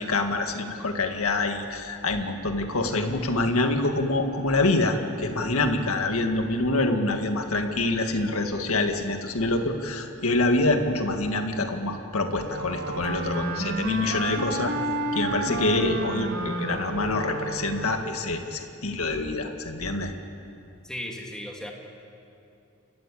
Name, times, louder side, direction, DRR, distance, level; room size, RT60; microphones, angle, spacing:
voice 1, 0.0-14.7 15.1-20.1, left 2 dB, 75° left, 5 dB, 2.0 m, -26 dB
Wind instrument woodwind instrument, 12.4-18.2, right 2 dB, 60° right, 2.1 m, -31 dB
voice 2, 20.8-21.7, left 1 dB, 5° left, 0 dB, 2.7 m, -36 dB
29.5 x 14.0 x 8.6 m, 2.8 s
head